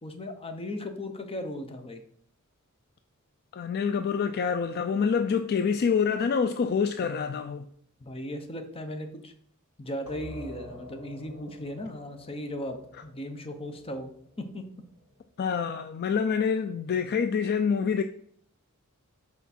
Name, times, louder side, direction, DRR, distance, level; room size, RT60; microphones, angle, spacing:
voice 1, 0.0-2.0 8.0-9.3 9.8-12.8 13.0-14.1 14.4-14.7, left 1 dB, 25° left, 0.8 m, -37 dB
voice 2, 3.5-7.7 15.4-18.0, left 6 dB, 45° left, 0.3 m, -26 dB
sound 1, 10.1-15.4, left 1 dB, 85° left, 3.0 m, -48 dB
5.9 x 4.6 x 4.2 m
head